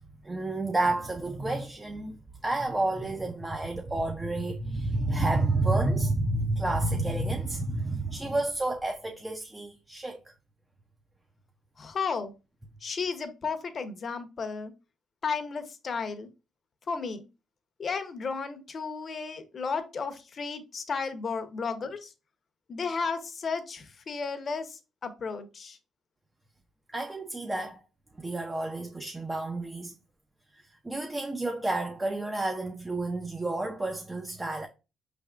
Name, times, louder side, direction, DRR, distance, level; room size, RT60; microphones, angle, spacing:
voice 1, 0.2-10.2 26.9-27.8 28.2-29.9 30.5-34.7, right 2 dB, 15° right, 0.5 m, -30 dB
voice 2, 11.8-12.3 12.8-14.7 15.2-16.3 16.9-17.2 17.8-22.1 22.7-25.8, left 5 dB, 45° left, 0.7 m, -33 dB
5.2 x 3.4 x 2.4 m
cardioid pair, 90°, 0 cm